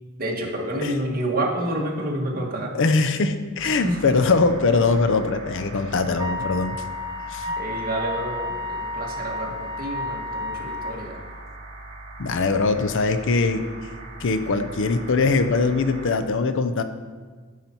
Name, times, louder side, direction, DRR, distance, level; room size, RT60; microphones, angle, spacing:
voice 1, 0.2-2.7 3.6-4.0 7.6-11.2, right 1 dB, 45° right, -1 dB, 1.7 m, -28 dB
voice 2, 2.7-6.8 7.3-7.6 12.2-13.6 14.2-16.8, left 3 dB, 60° left, 9 dB, 0.6 m, -22 dB
sound 1, 3.6-16.1, right 2 dB, 65° right, 2.1 m, -41 dB
Wind instrument woodwind instrument, 6.2-11.0, left 2 dB, 20° right, 0.4 m, -31 dB
13.0 x 5.7 x 4.5 m, 1.5 s
head